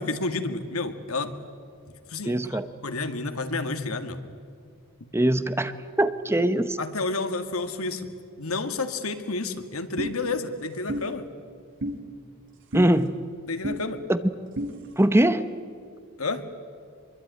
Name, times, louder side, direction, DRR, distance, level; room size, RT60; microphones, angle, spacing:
voice 1, 0.0-1.3 2.1-4.2 6.8-8.1 8.4-11.3 13.5-14.0 16.2-16.4, left 3 dB, 80° left, 8 dB, 2.1 m, -30 dB
voice 2, 2.3-2.7 5.1-5.7 6.0-6.8 12.7-13.2 14.1-14.2 15.0-15.5, right 1 dB, 10° right, 11 dB, 0.9 m, -22 dB
sound 1, 10.0-10.1 10.9-11.0 11.8-12.0 12.7-12.9 13.6-13.8 14.6-14.7, equal, 60° right, 2.3 m, -29 dB
24.0 x 23.0 x 9.4 m, 2.2 s
head